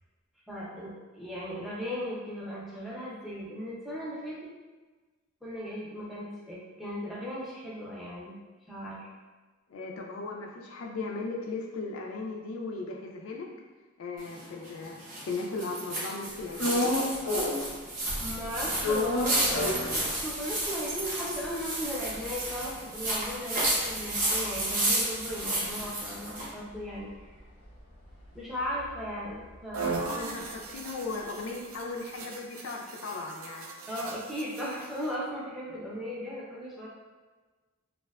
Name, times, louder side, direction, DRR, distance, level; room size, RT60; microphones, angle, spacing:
voice 1, 0.5-4.5 5.4-8.4 8.7-9.1 18.2-27.1 28.3-30.8 33.9-36.9, equal, ahead, -7 dB, 0.4 m, -37 dB
voice 2, 9.7-13.5 14.0-15.0 15.2-16.9 29.8-33.7, left 3 dB, 65° left, 1 dB, 0.3 m, -37 dB
sound 1, 14.2-26.5, right 1 dB, 40° right, 0.7 m, -32 dB
sound 2, 16.6-17.8 18.1-20.7 21.0-21.1 21.3-25.8 26.2-30.2, left 2 dB, 90° left, 0.7 m, -33 dB
sound 3, 29.7-35.1, right 4 dB, 70° right, 0.3 m, -39 dB
2.5 x 2.1 x 2.3 m, 1.3 s
head